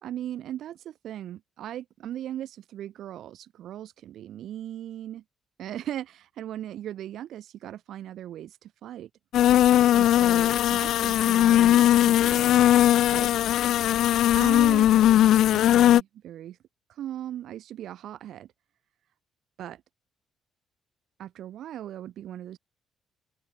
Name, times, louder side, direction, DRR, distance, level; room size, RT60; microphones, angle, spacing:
voice 1, 0.0-5.2 5.6-9.1 9.9-12.5 13.1-13.3 14.3-14.9 15.5-16.6 16.9-18.5 19.6-19.8 21.2-22.6, right 11 dB, 75° right, 5.1 m, -38 dB
sound 1, 9.3-16.0, left 12 dB, 80° left, 2.3 m, -19 dB
open air
cardioid pair, 90°, 0 cm